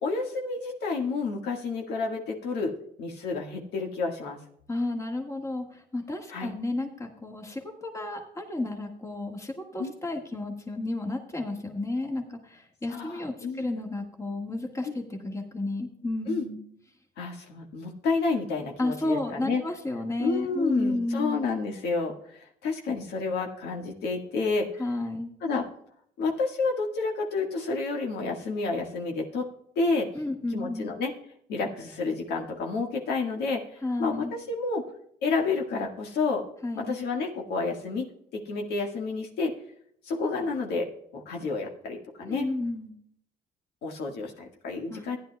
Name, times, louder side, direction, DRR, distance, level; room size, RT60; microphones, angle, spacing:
voice 1, 0.0-2.7 3.0-4.4 6.3-6.5 9.8-9.9 12.9-13.7 14.8-15.0 16.3-16.4 17.2-19.6 20.2-24.7 25.4-25.7 26.2-29.5 29.7-30.1 30.5-31.1 31.5-34.9 35.2-36.4 36.8-39.5 40.0-42.5 43.8-45.2, left 4 dB, 75° left, 2 dB, 1.6 m, -30 dB
voice 2, 4.7-16.6 18.8-21.4 24.8-25.3 30.1-31.0 33.8-34.3 36.6-37.0 42.2-42.9 44.9-45.1, left 2 dB, 15° left, 2 dB, 1.6 m, -32 dB
15.0 x 10.5 x 2.2 m, 0.68 s
cardioid pair, 110°, 17 cm